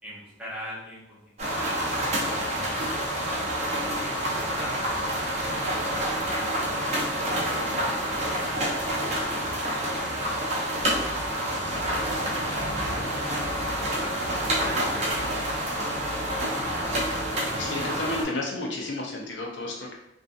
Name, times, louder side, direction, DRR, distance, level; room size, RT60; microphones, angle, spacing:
voice 1, 0.0-3.4 3.9-8.6 9.0-13.3 14.0-16.2, equal, 5° right, -8 dB, 0.9 m, -44 dB
sound 1, 1.4-18.2, right 1 dB, 40° right, 0.6 m, -28 dB
sound 2, 10.8-17.7, equal, 90° right, 0.5 m, -43 dB
voice 2, 17.6-19.9, left 2 dB, 80° left, -1 dB, 0.5 m, -32 dB
2.5 x 2.3 x 2.5 m, 0.83 s
head